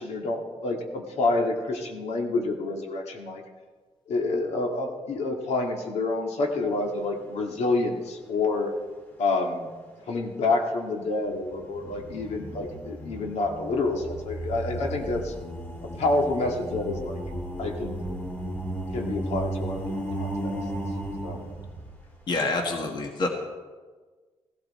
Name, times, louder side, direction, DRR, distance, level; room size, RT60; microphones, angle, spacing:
voice 1, 0.0-3.4 4.1-8.7 9.2-9.7 10.1-15.3 15.8-17.2 17.6-18.0 18.9-19.8 20.2-20.5 21.2-21.4, left 2 dB, 75° left, 2 dB, 2.0 m, -28 dB
sound 1, 6.7-7.4 7.8-7.9 11.3-22.2, right 1 dB, 15° left, 1.8 m, -35 dB
voice 2, 22.3-23.3, left 3 dB, 40° left, 3 dB, 1.5 m, -27 dB
16.5 x 16.0 x 4.3 m, 1.4 s
wide cardioid pair, 175°, 11 cm